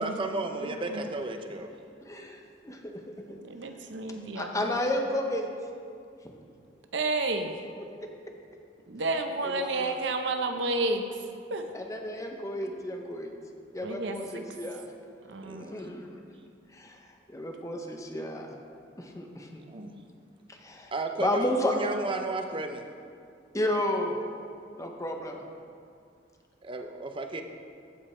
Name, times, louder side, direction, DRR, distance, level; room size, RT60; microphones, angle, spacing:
voice 1, 0.0-1.7 15.4-15.7 19.7-19.9 20.9-22.8 26.6-27.4, right 2 dB, 30° right, 5 dB, 0.6 m, -33 dB
voice 2, 0.5-1.1 3.3-4.8 6.9-7.5 8.9-11.2 11.5-11.7 13.8-14.4 15.3-15.9 19.7-20.0, right 2 dB, 75° right, 6 dB, 0.7 m, -31 dB
voice 3, 2.0-3.4 4.4-5.5 9.4-10.0 11.7-13.3 13.7-14.9 15.6-16.2 16.7-18.6 19.0-19.6 20.5-20.9 21.2-21.7 23.5-24.2 24.8-25.4, left 1 dB, 15° left, 2 dB, 0.7 m, -32 dB
14.5 x 5.1 x 4.4 m, 2.3 s
head